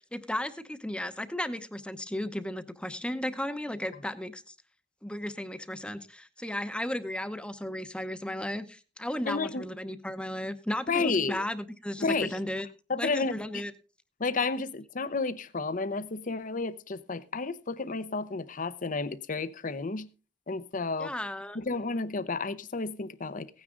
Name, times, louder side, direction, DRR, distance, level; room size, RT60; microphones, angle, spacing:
voice 1, 0.0-4.5 5.0-12.7 12.9-13.7 21.0-21.6, left 1 dB, 5° left, 0.8 m, -35 dB
voice 2, 9.2-9.7 10.9-11.4 12.0-12.4 12.9-13.6 14.2-20.1 20.5-21.1 21.5-23.5, left 3 dB, 45° left, 0.8 m, -31 dB
16.5 x 9.6 x 3.8 m
head